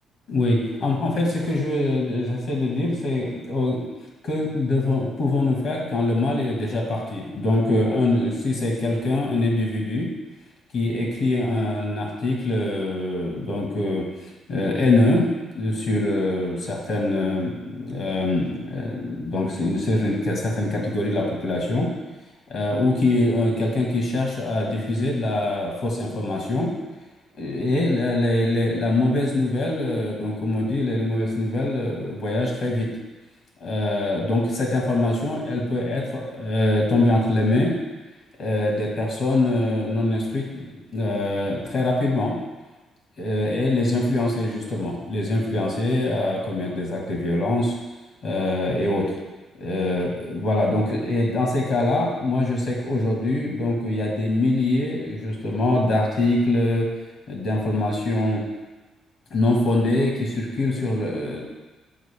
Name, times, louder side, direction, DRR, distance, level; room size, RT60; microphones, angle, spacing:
voice 1, 0.3-3.9 4.2-10.1 10.7-14.0 14.5-21.9 22.5-26.7 27.4-32.9 33.6-37.7 38.4-42.3 43.2-47.8 48.2-49.1 49.6-56.9 57.3-58.4 59.3-61.4, left 2 dB, 65° left, -1 dB, 1.4 m, -23 dB
6.6 x 4.6 x 3.3 m, 1.2 s
cardioid pair, 90°, 0 cm